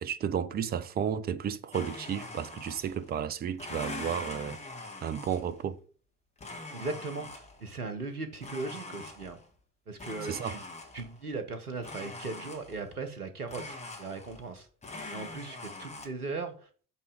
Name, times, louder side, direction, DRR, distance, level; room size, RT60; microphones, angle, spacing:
voice 1, 0.0-4.6 5.0-5.8 10.3-10.5, right 8 dB, 25° right, 0.5 m, -32 dB
Domestic sounds home sounds, 1.7-3.1 3.5-5.7 6.4-7.7 8.4-9.5 10.0-11.2 11.8-12.9 13.5-14.6 14.8-16.1, left 2 dB, 15° left, 1.3 m, -43 dB
voice 2, 6.7-9.4 9.9-10.6 10.9-14.7 15.1-16.7, right 3 dB, 90° right, 0.8 m, -38 dB
8.2 x 3.1 x 4.9 m
figure-of-eight pair, 60°, 44 cm